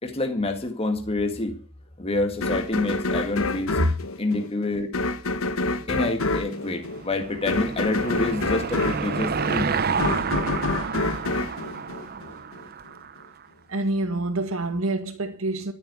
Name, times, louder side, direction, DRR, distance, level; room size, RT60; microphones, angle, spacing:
voice 1, 0.0-1.6 2.0-3.8 4.2-4.9 5.9-9.7, left 2 dB, 30° left, 2.1 m, -27 dB
sound 1, 2.4-12.6, left 3 dB, 85° left, 1.3 m, -28 dB
Car passing by / Engine, 6.4-13.3, right 5 dB, 50° right, 0.8 m, -30 dB
voice 2, 13.7-15.7, right 1 dB, 85° right, 1.9 m, -26 dB
13.0 x 8.8 x 8.3 m
head